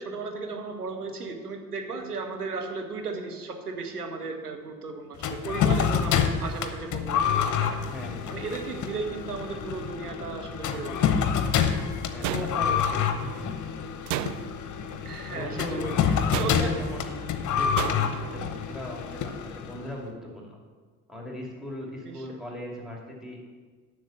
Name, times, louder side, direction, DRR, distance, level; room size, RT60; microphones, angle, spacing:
voice 1, 0.0-7.7 8.3-11.0 12.2-12.5 15.0-15.9 16.4-16.7 22.0-22.4, right 4 dB, 85° right, 4 dB, 0.8 m, -35 dB
sound 1, 5.2-19.9, left 7 dB, 40° left, 0.9 m, -27 dB
voice 2, 7.8-8.5 12.1-13.4 15.3-15.9 16.3-17.2 17.5-20.6 21.1-23.4, left 1 dB, ahead, -2 dB, 2.7 m, -38 dB
sound 2, 12.2-13.0 14.1-14.7 16.3-16.9 17.8-18.3, right 13 dB, 40° right, 0.4 m, -33 dB
7.7 x 6.4 x 7.2 m, 1.4 s
figure-of-eight pair, 50°, 45 cm